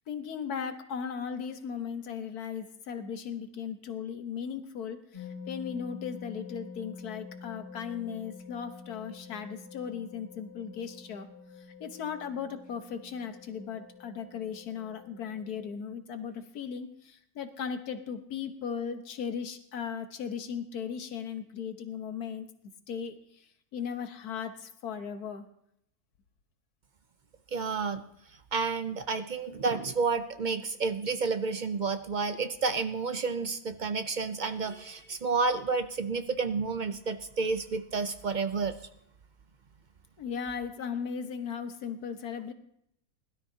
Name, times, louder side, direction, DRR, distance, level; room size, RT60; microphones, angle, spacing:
voice 1, 0.1-11.3 11.6-22.5 22.9-25.4 40.2-42.5, left 7 dB, 85° left, 8 dB, 1.6 m, -37 dB
sound 1, 5.1-15.7, left 5 dB, 25° left, 2.6 m, -47 dB
voice 2, 27.5-28.0 28.5-38.8, right 4 dB, 65° right, 9 dB, 0.4 m, -30 dB
20.5 x 12.5 x 2.8 m, 0.74 s
omnidirectional pair, 1.6 m